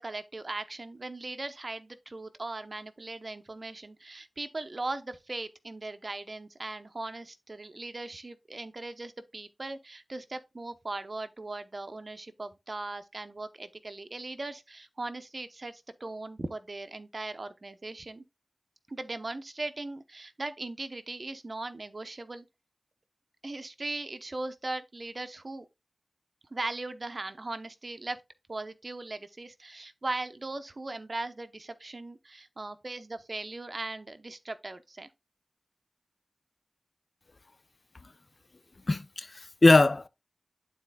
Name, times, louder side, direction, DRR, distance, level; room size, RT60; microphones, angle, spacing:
voice 1, 0.0-18.2 18.9-22.4 23.4-25.7 26.5-28.2 28.5-35.1, right 2 dB, 55° right, 0.8 m, -39 dB
voice 2, 38.9-40.1, left 2 dB, 55° left, 0.5 m, -21 dB
11.5 x 4.3 x 2.3 m
cardioid pair, 40°, 0 cm